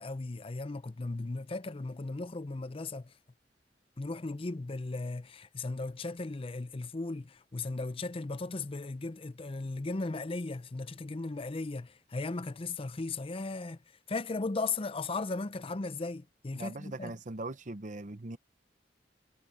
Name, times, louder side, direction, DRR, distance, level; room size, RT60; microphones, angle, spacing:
voice 1, 0.0-3.1 4.0-13.8 14.1-17.1, left 3 dB, 30° left, 0.6 m, -36 dB
voice 2, 16.5-18.4, right 2 dB, 45° right, 0.9 m, -40 dB
head